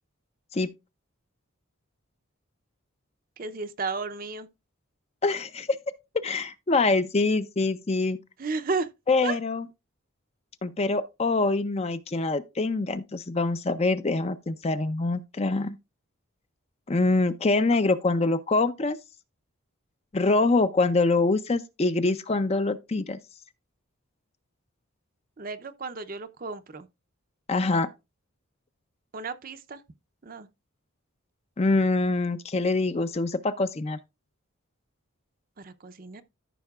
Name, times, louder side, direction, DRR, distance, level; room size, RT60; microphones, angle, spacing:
voice 1, 3.4-4.5 8.4-8.9 9.2-9.4 25.4-26.9 29.1-29.8 30.2-30.5 35.6-36.2, right 4 dB, 40° right, 0.6 m, -33 dB
voice 2, 5.2-5.8 6.1-8.2 9.1-9.6 10.6-15.8 16.9-19.0 20.1-23.2 27.5-27.9 31.6-34.0, left 3 dB, 30° left, 0.4 m, -25 dB
14.0 x 5.7 x 2.3 m
head